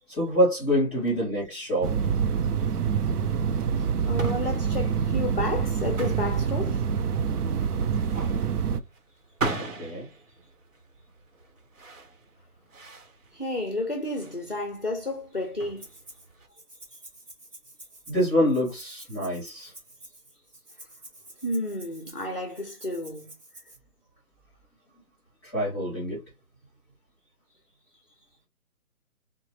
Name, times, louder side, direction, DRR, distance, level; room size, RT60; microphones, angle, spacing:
voice 1, 0.1-2.0 9.8-10.1 18.1-19.7 25.4-26.2, equal, ahead, 2.3 m, -26 dB
sound 1, 1.8-8.8, right 7 dB, 75° right, 0.6 m, -26 dB
sound 2, 3.6-16.5, right 3 dB, 60° right, 1.0 m, -39 dB
voice 2, 3.8-6.8 13.3-15.9 21.4-23.3, left 1 dB, 40° left, 0.4 m, -31 dB
Rattle (instrument), 15.8-16.3 16.6-23.8, right 1 dB, 35° right, 2.3 m, -49 dB
3.8 x 2.1 x 3.1 m
hypercardioid pair, 175°, 46 cm